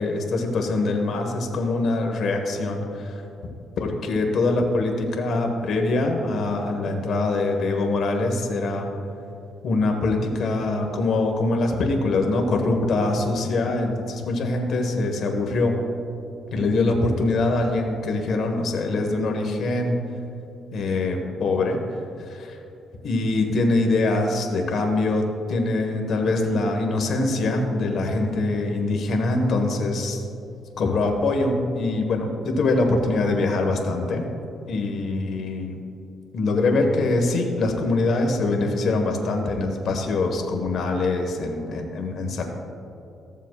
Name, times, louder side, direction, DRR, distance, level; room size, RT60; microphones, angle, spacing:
voice 1, 0.0-3.2 3.8-8.9 9.6-15.7 16.5-19.9 20.7-21.8 22.3-22.6 23.0-30.2 30.8-34.3 34.7-35.8 36.3-42.4, left 2 dB, 65° left, 2 dB, 1.3 m, -23 dB
15.0 x 7.3 x 2.4 m, 2.8 s
cardioid pair, 90°, 0 cm